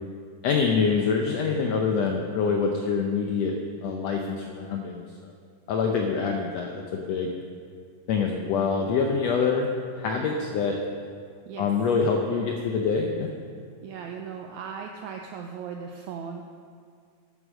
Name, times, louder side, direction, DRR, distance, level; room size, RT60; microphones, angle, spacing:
voice 1, 0.4-3.5 3.8-5.3 5.7-7.3 8.1-9.7 10.0-10.8 11.6-13.3, left 5 dB, 80° left, 2 dB, 1.5 m, -25 dB
voice 2, 13.8-16.4, right 6 dB, 80° right, 3 dB, 1.7 m, -37 dB
9.4 x 9.3 x 6.3 m, 2.1 s
omnidirectional pair, 3.9 m